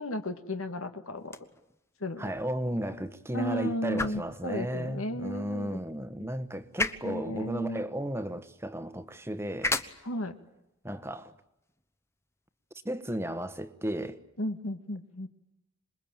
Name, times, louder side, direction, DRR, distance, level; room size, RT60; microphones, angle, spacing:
voice 1, 0.0-1.4 2.0-2.3 3.3-5.8 7.0-7.9 10.0-10.4 14.4-15.3, left 1 dB, 80° left, 2.0 m, -34 dB
sound 1, 1.2-13.2, left 2 dB, 10° left, 1.1 m, -40 dB
voice 2, 2.2-9.8 10.8-11.3 12.8-14.2, right 1 dB, 10° right, 1.3 m, -34 dB
27.5 x 22.0 x 9.0 m
head